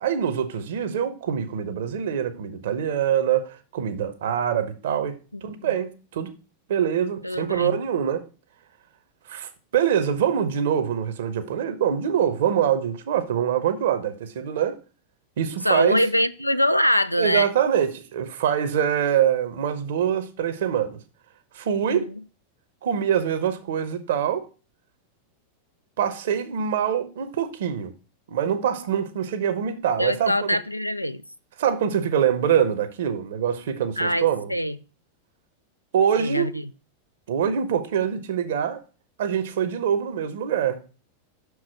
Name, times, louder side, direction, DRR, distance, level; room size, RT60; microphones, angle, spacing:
voice 1, 0.0-6.3 6.7-8.3 9.3-14.8 15.4-16.0 17.2-21.0 21.5-22.1 22.8-24.5 26.0-27.9 28.3-30.6 31.6-34.5 35.9-36.6 37.3-38.8 39.2-40.8, right 8 dB, 55° right, 0.8 m, -24 dB
voice 2, 7.2-7.8 15.6-17.5 21.8-22.0 30.0-31.2 34.0-34.8 36.1-36.6, equal, 90° left, 0.3 m, -23 dB
6.0 x 4.7 x 5.8 m
figure-of-eight pair, 90°, 0 cm